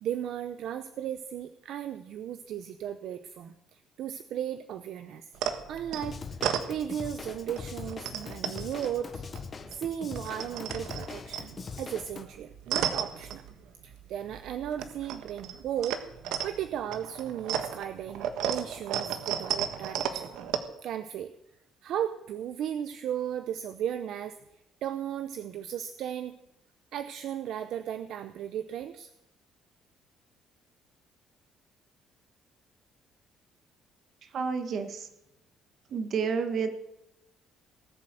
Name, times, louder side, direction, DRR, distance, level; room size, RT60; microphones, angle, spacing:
voice 1, 0.0-5.3 5.7-6.2 6.7-9.2 9.7-11.5 11.8-13.4 13.8-16.0 16.4-20.3 20.8-21.3 21.8-24.4 24.8-26.3 26.9-29.1, right 10 dB, 60° right, 11 dB, 0.7 m, -35 dB
sound 1, 5.4-7.2 7.5-9.8 10.0-14.0 14.3-20.6, right 9 dB, 75° right, 1.4 m, -34 dB
Drum kit / Drum, 6.0-12.2, left 5 dB, 25° left, 1.0 m, -41 dB
voice 2, 34.2-35.1 35.9-36.7, right 5 dB, 40° right, 7 dB, 1.7 m, -30 dB
18.5 x 7.6 x 7.8 m, 0.85 s
cardioid pair, 170°, 0 cm